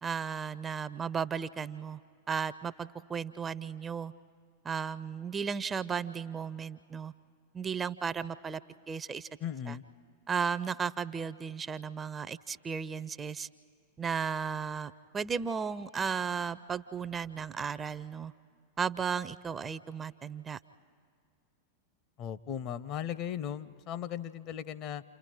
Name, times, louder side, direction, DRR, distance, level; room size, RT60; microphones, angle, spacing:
voice 1, 0.0-2.0 2.3-4.1 4.6-7.1 7.5-8.6 8.9-9.3 9.7-9.8 10.3-13.5 14.0-18.3 18.8-20.6, right 6 dB, 20° right, 15 dB, 0.5 m, -35 dB
voice 2, 9.4-9.8 22.2-25.0, left 9 dB, 40° left, 15 dB, 0.6 m, -37 dB
28.5 x 28.5 x 4.9 m, 2.2 s
figure-of-eight pair, 90°, 0 cm